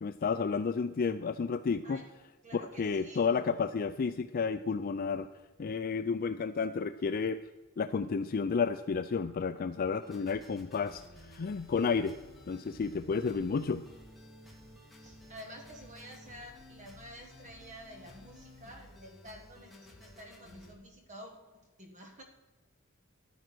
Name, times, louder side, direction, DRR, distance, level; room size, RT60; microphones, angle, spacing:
voice 1, 0.0-2.0 2.5-5.3 5.6-7.4 7.8-12.2 12.5-13.8, left 5 dB, 40° left, 10 dB, 0.4 m, -31 dB
voice 2, 2.4-3.5 15.0-21.3 21.8-22.2, equal, 35° right, 3 dB, 1.6 m, -50 dB
sound 1, 10.0-20.8, left 1 dB, ahead, 2.1 m, -54 dB
11.5 x 9.4 x 6.1 m, 1.2 s
head